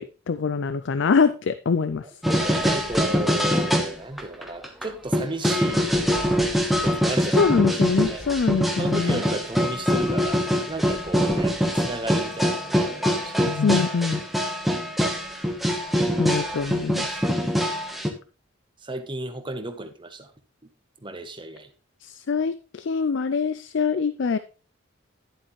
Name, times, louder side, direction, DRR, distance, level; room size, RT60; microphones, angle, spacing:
voice 1, 0.0-2.1 7.3-9.2 13.5-14.2 16.2-17.2 22.0-24.4, left 5 dB, 60° left, 0.4 m, -24 dB
sound 1, 2.2-3.9 4.2-4.8 5.1-18.1, equal, ahead, 1.1 m, -24 dB
voice 2, 2.2-5.9 6.8-7.5 8.1-8.2 8.8-13.5 18.8-20.3 21.0-21.7, right 2 dB, 25° right, 1.0 m, -34 dB
11.5 x 7.6 x 3.1 m
head